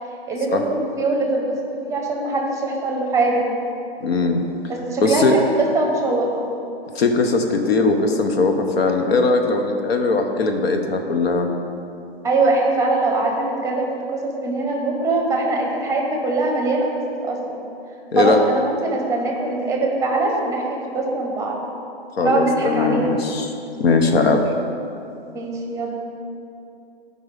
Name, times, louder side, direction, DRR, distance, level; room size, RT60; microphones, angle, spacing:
voice 1, 0.3-3.5 4.7-6.5 12.2-17.6 18.2-21.6 22.2-23.1 25.3-25.9, right 2 dB, 10° right, 1 dB, 1.2 m, -22 dB
voice 2, 4.0-4.4 5.0-5.4 6.9-11.5 18.1-18.4 22.2-23.5 23.8-24.4, left 3 dB, 70° left, 4 dB, 1.1 m, -19 dB
12.5 x 5.3 x 3.5 m, 2.7 s
hypercardioid pair, 125°, 31 cm